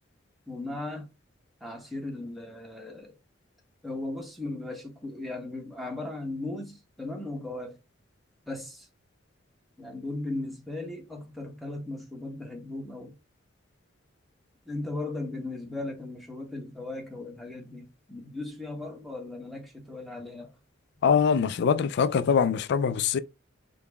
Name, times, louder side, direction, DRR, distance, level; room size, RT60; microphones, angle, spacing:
voice 1, 0.5-1.1 1.6-3.1 3.8-7.8 8.5-8.9 9.8-13.1 14.7-20.5, left 2 dB, ahead, 0.9 m, -37 dB
voice 2, 21.0-23.2, left 6 dB, 60° left, 0.3 m, -23 dB
3.8 x 2.0 x 3.3 m
head